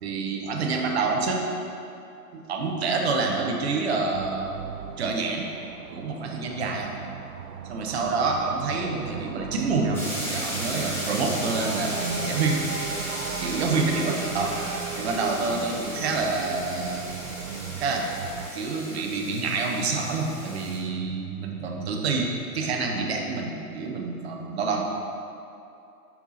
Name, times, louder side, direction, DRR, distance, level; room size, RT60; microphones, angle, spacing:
voice 1, 0.0-1.4 2.5-4.5 5.0-5.5 5.9-6.9 7.7-10.0 10.3-12.6 13.4-14.5 15.0-17.0 17.8-18.1 18.5-24.8, right 4 dB, 40° right, 1 dB, 1.0 m, -27 dB
sound 1, 4.1-18.5, right 7 dB, 65° right, 0.6 m, -37 dB
sound 2, 9.9-20.8, equal, 5° left, 1.5 m, -35 dB
7.0 x 5.8 x 4.1 m, 2.7 s
figure-of-eight pair, 135°, 47 cm